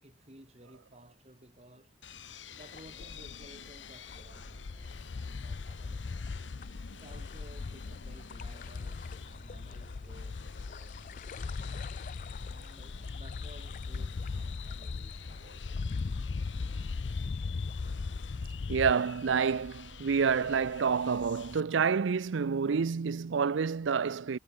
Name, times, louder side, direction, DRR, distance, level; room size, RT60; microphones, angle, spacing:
voice 1, 0.0-2.0 2.5-6.4 6.9-11.4 12.4-17.5, right 1 dB, 35° right, 3.9 m, -57 dB
sound 1, 2.0-21.6, left 5 dB, 85° left, 4.3 m, -49 dB
sound 2, 2.6-18.9, left 4 dB, 45° left, 0.4 m, -39 dB
voice 2, 18.7-24.4, right 6 dB, 85° right, 0.5 m, -28 dB
head